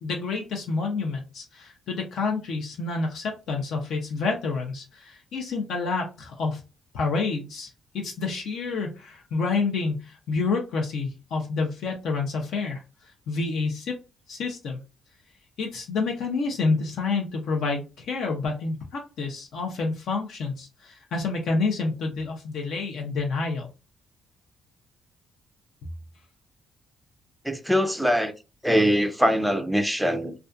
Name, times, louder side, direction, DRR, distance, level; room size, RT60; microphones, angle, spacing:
voice 1, 0.0-6.6 6.9-7.7 8.0-13.9 14.3-14.8 15.6-23.7, left 4 dB, 75° left, 0.6 m, -28 dB
voice 2, 27.4-28.3 28.6-30.3, equal, ahead, 0.4 m, -22 dB
2.4 x 2.3 x 2.4 m
cardioid pair, 90°, 0 cm